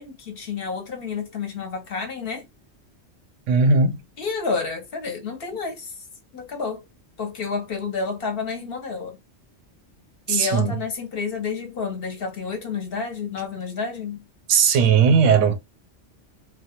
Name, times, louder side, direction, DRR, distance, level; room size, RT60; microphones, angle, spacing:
voice 1, 0.0-2.5 4.2-6.0 6.3-6.8 7.2-9.2 10.3-14.2, left 5 dB, 55° left, 0.8 m, -30 dB
voice 2, 3.5-4.0 10.3-10.7 14.5-15.6, right 5 dB, 85° right, 0.9 m, -17 dB
2.3 x 2.2 x 2.8 m
omnidirectional pair, 1.3 m